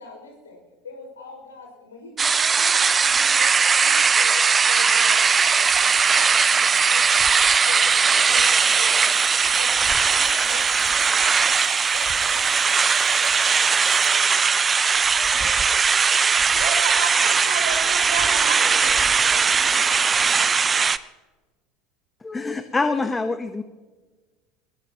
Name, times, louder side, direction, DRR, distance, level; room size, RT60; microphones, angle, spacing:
voice 1, 0.0-12.9 13.2-16.2, left 3 dB, 75° left, 1 dB, 6.0 m, -43 dB
sound 1, 2.2-21.0, right 5 dB, 25° right, 0.7 m, -19 dB
sound 2, 5.1-14.2, right 9 dB, 45° right, 1.8 m, -34 dB
voice 2, 16.3-19.0, right 6 dB, 65° right, 1 dB, 5.1 m, -31 dB
voice 3, 22.2-23.6, left 3 dB, 15° left, 9 dB, 1.0 m, -25 dB
21.5 x 21.0 x 3.0 m, 1.3 s
figure-of-eight pair, 70°, 0 cm